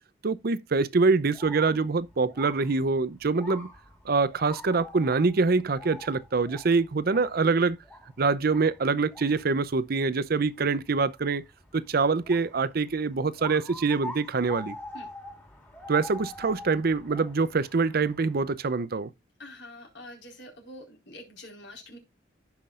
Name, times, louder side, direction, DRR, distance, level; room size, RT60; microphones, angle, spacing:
voice 1, 0.2-3.7 4.1-7.8 8.2-11.4 11.7-14.8 15.9-19.1, right 4 dB, 55° right, 0.6 m, -25 dB
sound 1, 1.2-18.5, left 1 dB, 10° left, 2.2 m, -46 dB
voice 2, 19.4-22.0, left 1 dB, 70° left, 4.5 m, -45 dB
15.5 x 5.9 x 2.5 m
head